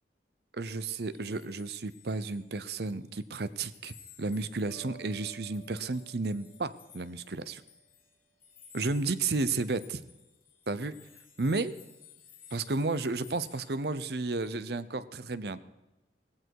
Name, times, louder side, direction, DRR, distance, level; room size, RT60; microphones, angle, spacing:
voice 1, 0.5-7.6 8.7-10.0 10.7-10.9 11.4-11.7 12.5-15.6, right 3 dB, 60° right, 15 dB, 0.7 m, -32 dB
sound 1, 1.1-2.9 3.2-14.5, left 8 dB, 50° left, 4.2 m, -56 dB
sound 2, 4.7-7.8, right 6 dB, 15° right, 6.8 m, -55 dB
17.0 x 16.0 x 4.7 m, 1.0 s
head